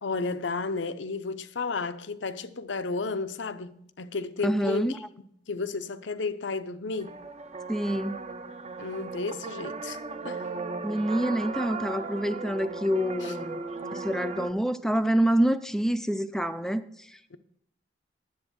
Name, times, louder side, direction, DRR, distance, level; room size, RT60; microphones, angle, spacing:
voice 1, 0.0-5.0 5.5-7.1 8.8-10.5 13.2-13.3 17.3-17.4, left 4 dB, 85° left, 0.7 m, -33 dB
voice 2, 4.4-5.0 7.7-8.2 10.8-13.6 13.9-17.1, equal, 5° left, 0.5 m, -27 dB
sound 1, 6.9-14.5, right 4 dB, 40° right, 0.7 m, -37 dB
10.5 x 7.9 x 6.2 m
head